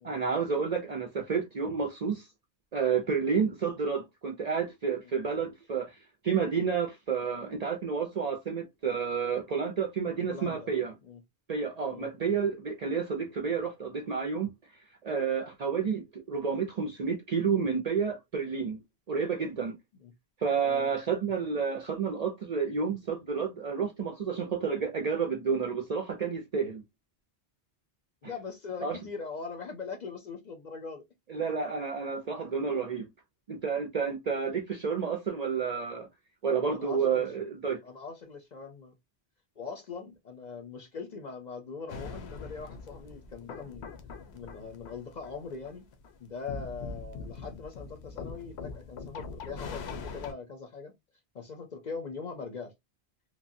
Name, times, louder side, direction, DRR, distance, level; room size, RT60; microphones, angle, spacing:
voice 1, 0.0-2.3 2.7-6.0 6.2-10.9 11.5-14.5 15.0-18.8 19.1-19.7 20.4-26.8 28.2-28.3 28.8-29.0 31.3-33.0 33.5-36.1 36.4-37.8, right 6 dB, 50° right, 0.5 m, -30 dB
voice 2, 10.3-10.7 11.0-11.2 11.9-12.1 20.0-20.1 20.6-20.9 28.2-31.0 36.7-37.3 37.8-38.9 39.6-43.9 44.3-45.8 46.2-50.9 51.3-52.7, left 5 dB, 50° left, 0.6 m, -41 dB
sound 1, 41.9-50.3, left 4 dB, 75° left, 0.9 m, -42 dB
3.0 x 2.2 x 2.5 m
omnidirectional pair, 1.1 m